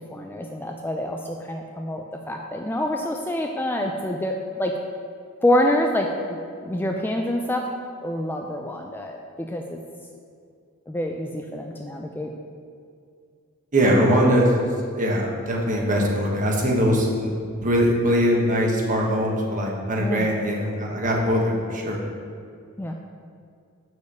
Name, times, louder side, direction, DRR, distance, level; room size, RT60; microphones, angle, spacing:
voice 1, 0.0-4.7 5.4-6.4 6.6-7.7 8.0-9.8 10.9-12.3 20.0-20.3 22.8-22.9, left 1 dB, 10° left, 2 dB, 0.4 m, -26 dB
voice 2, 13.7-14.4 15.0-17.3 17.6-22.0, equal, 40° right, -1 dB, 1.4 m, -21 dB
6.4 x 5.2 x 6.7 m, 2.3 s
head